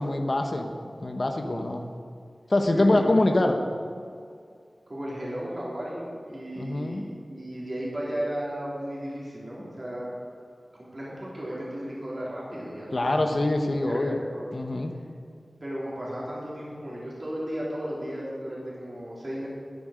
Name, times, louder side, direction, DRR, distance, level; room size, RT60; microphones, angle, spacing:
voice 1, 0.0-1.8 2.5-3.6 6.6-7.0 12.9-14.2 14.5-15.0, left 2 dB, 50° left, 4 dB, 1.0 m, -24 dB
voice 2, 2.7-3.2 4.9-10.2 10.8-14.5 14.9-15.0 15.6-19.5, equal, 40° right, -6 dB, 3.5 m, -35 dB
13.5 x 9.8 x 5.1 m, 2.3 s
wide cardioid pair, 65°, 0 cm